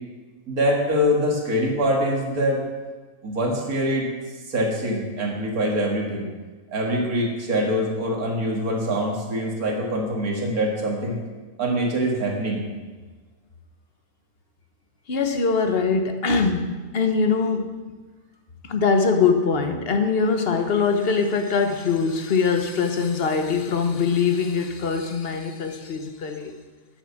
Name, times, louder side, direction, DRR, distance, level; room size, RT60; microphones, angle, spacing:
voice 1, 0.5-2.6 3.2-4.1 4.5-6.3 6.7-11.2 11.6-12.6, equal, 90° right, 0 dB, 2.4 m, -24 dB
voice 2, 15.1-16.7 16.9-17.8 18.7-26.5, left 5 dB, 45° left, 6 dB, 1.2 m, -22 dB
8.8 x 7.5 x 7.2 m, 1.3 s
omnidirectional pair, 1.5 m